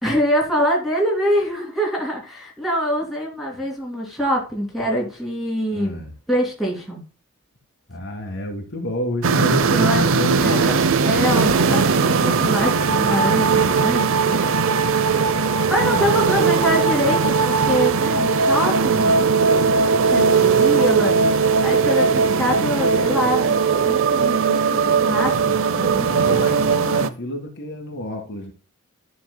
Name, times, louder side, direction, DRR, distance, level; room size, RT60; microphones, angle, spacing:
voice 1, 0.0-5.9 6.3-7.0 9.7-10.1 10.3-10.7 11.0-14.4 15.7-19.4 20.0-23.6 23.8-26.4, equal, ahead, -2 dB, 2.5 m, -24 dB
voice 2, 5.7-6.1 7.9-10.4 15.8-16.6 26.1-28.5, equal, 55° left, 2 dB, 2.0 m, -29 dB
sound 1, 9.2-27.1, right 5 dB, 60° right, 0.6 m, -19 dB
12.0 x 6.3 x 2.2 m, 0.34 s
head